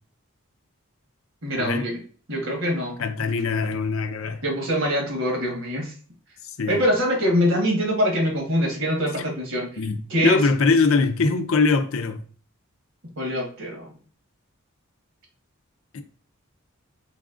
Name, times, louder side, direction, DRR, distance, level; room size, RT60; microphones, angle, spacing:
voice 1, 1.4-2.0 2.3-3.0 4.2-5.9 6.7-9.7 10.1-10.4 13.2-13.9, equal, 60° right, 1.4 m, -24 dB
voice 2, 3.0-4.4 6.6-6.8 9.8-12.2 15.9-16.0, left 4 dB, 70° left, 0.5 m, -22 dB
4.0 x 3.6 x 2.5 m
head